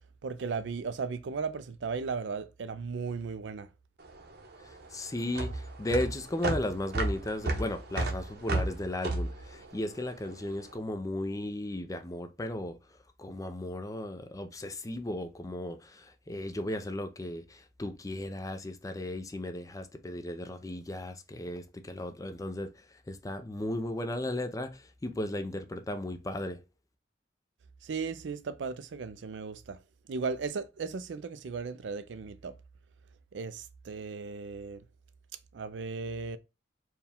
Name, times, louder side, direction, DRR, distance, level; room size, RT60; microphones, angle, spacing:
voice 1, 0.2-3.7 27.8-29.8 30.1-32.5 33.3-34.8 35.5-36.4, right 5 dB, 80° right, 0.4 m, -36 dB
sound 1, 4.0-10.5, right 2 dB, 60° right, 0.8 m, -33 dB
voice 2, 4.6-12.8 13.2-22.7 23.1-26.6, left 1 dB, 20° left, 0.5 m, -35 dB
4.5 x 2.3 x 3.5 m
head